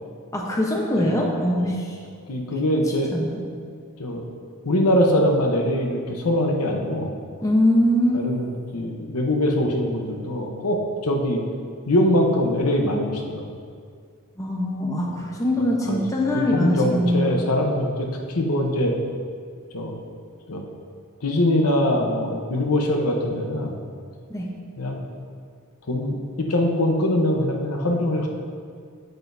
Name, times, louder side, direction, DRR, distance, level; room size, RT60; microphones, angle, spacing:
voice 1, 0.3-1.9 3.1-3.4 7.4-8.3 14.4-17.4 24.3-24.5, left 1 dB, 15° left, -2 dB, 0.9 m, -22 dB
voice 2, 2.3-3.1 4.0-4.2 4.6-7.1 8.1-11.4 11.9-13.5 15.1-15.2 15.9-16.0 16.3-18.9 19.7-19.9 20.5-20.6 21.2-23.7 24.8-25.0 25.9-28.3, left 1 dB, 80° left, 1 dB, 0.9 m, -23 dB
8.9 x 8.0 x 2.7 m, 2.1 s
head